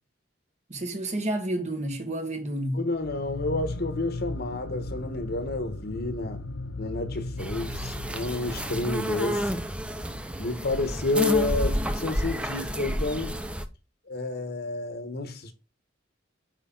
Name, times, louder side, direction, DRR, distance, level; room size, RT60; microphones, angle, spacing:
voice 1, 0.7-2.8 11.6-11.8, right 1 dB, 35° right, 1.6 m, -30 dB
voice 2, 2.7-6.4 6.8-9.5 10.4-13.4 14.1-15.5, left 2 dB, 55° left, 1.2 m, -30 dB
sound 1, 2.9-10.3, left 2 dB, 75° left, 0.7 m, -37 dB
sound 2, 7.4-13.6, equal, 5° right, 0.6 m, -30 dB
8.4 x 5.0 x 3.8 m
head